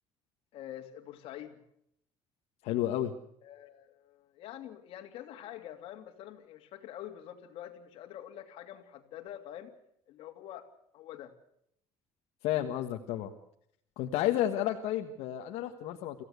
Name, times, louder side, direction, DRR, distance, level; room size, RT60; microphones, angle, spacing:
voice 1, 0.5-1.6 3.4-9.7 10.1-10.6 10.9-11.3, left 11 dB, 60° left, 4 dB, 2.8 m, -46 dB
voice 2, 2.6-3.1 12.4-13.3 14.0-16.2, left 12 dB, 80° left, 4 dB, 1.5 m, -31 dB
25.5 x 16.0 x 8.2 m, 0.72 s
cardioid pair, 165°, 11 cm